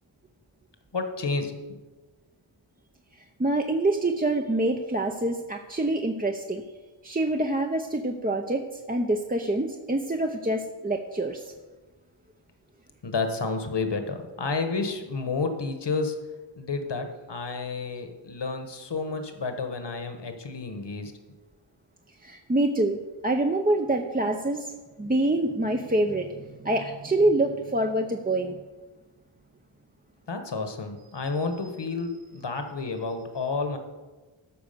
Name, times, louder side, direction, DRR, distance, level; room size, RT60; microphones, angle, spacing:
voice 1, 0.9-1.6 13.0-16.2 16.6-21.1 30.3-33.8, left 4 dB, 55° left, 7 dB, 1.4 m, -30 dB
voice 2, 3.4-6.6 7.0-11.4 22.2-24.7 25.0-28.6, right 1 dB, 20° right, 3 dB, 0.7 m, -26 dB
13.0 x 4.9 x 6.7 m, 1.2 s
wide cardioid pair, 70°, 49 cm